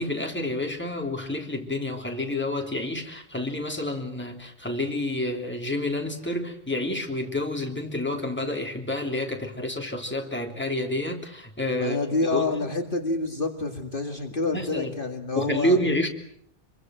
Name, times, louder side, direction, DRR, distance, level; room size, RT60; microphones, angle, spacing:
voice 1, 0.0-12.7 14.5-14.9 15.3-16.1, left 1 dB, 10° left, 2 dB, 3.1 m, -29 dB
voice 2, 11.8-15.8, left 2 dB, 45° left, 4 dB, 2.3 m, -28 dB
26.5 x 24.0 x 7.7 m, 0.67 s
omnidirectional pair, 1.2 m